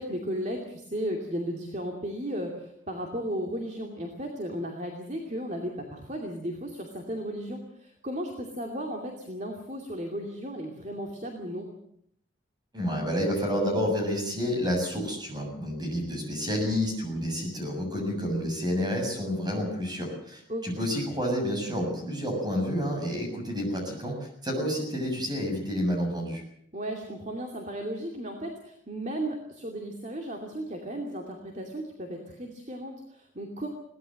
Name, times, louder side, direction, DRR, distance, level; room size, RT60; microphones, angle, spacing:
voice 1, 0.0-11.7 20.5-20.9 26.7-33.7, equal, 35° right, 2 dB, 2.7 m, -35 dB
voice 2, 12.7-26.4, equal, 20° right, 2 dB, 7.1 m, -29 dB
22.0 x 18.0 x 7.7 m, 0.70 s
head